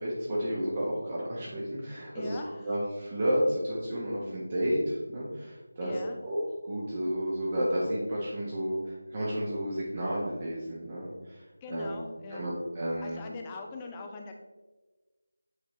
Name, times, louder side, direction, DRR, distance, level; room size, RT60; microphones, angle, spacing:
voice 1, 0.0-2.4 2.6-5.9 6.2-6.4 6.6-11.9 12.3-13.2, equal, 30° right, -6 dB, 1.3 m, -31 dB
voice 2, 2.1-2.7 5.8-6.2 11.6-12.5 13.0-14.4, left 3 dB, 15° left, 2 dB, 0.6 m, -42 dB
8.1 x 4.4 x 3.2 m, 1.3 s
figure-of-eight pair, 165°, 0 cm